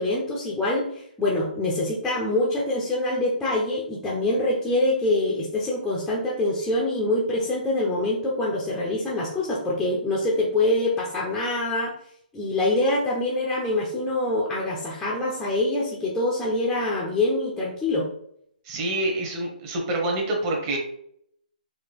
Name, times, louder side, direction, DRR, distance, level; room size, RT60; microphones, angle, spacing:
voice 1, 0.0-11.9 12.3-18.1, left 2 dB, 5° left, -4 dB, 0.5 m, -25 dB
voice 2, 18.6-20.8, right 2 dB, 25° right, 0 dB, 0.9 m, -26 dB
4.1 x 2.4 x 3.2 m, 0.69 s
hypercardioid pair, 155°, 5 cm